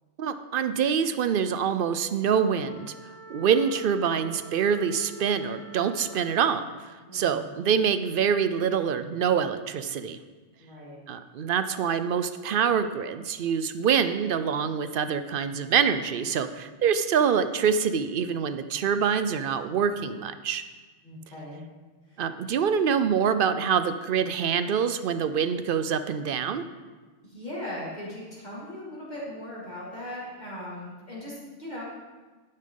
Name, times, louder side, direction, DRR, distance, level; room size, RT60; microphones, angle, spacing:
voice 1, 0.2-2.9 3.3-6.6 7.1-10.2 11.1-20.6 22.2-26.6, right 7 dB, 55° right, 11 dB, 0.7 m, -25 dB
Wind instrument woodwind instrument, 2.2-6.5, right 3 dB, 10° left, 3.3 m, -47 dB
voice 2, 7.1-7.5 10.6-11.0 21.0-21.6 22.1-22.2 27.2-31.8, left 1 dB, 40° left, -7 dB, 2.5 m, -39 dB
11.0 x 9.8 x 3.8 m, 1.3 s
omnidirectional pair, 1.2 m